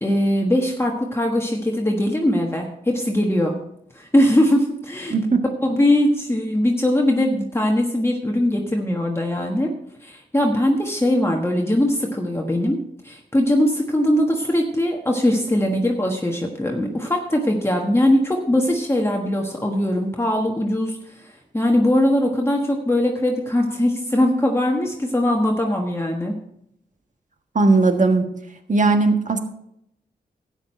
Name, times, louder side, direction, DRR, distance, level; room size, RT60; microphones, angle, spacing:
voice 1, 0.0-3.5 3.9-5.1 5.6-9.7 10.0-12.8 13.0-26.4, left 1 dB, 15° left, 0 dB, 1.3 m, -21 dB
voice 2, 5.1-5.4 27.5-28.3 28.7-29.4, right 3 dB, 50° right, 6 dB, 1.5 m, -17 dB
12.0 x 8.7 x 4.3 m, 0.76 s
cardioid pair, 65°, 17 cm